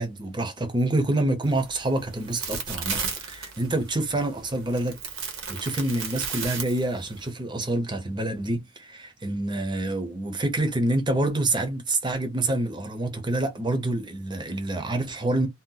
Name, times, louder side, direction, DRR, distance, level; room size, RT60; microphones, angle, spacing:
voice 1, 0.0-5.0 5.5-15.5, right 2 dB, 20° right, 0.7 m, -27 dB
sound 1, 1.4-7.3, right 5 dB, 80° right, 1.0 m, -35 dB
2.8 x 2.1 x 3.8 m
head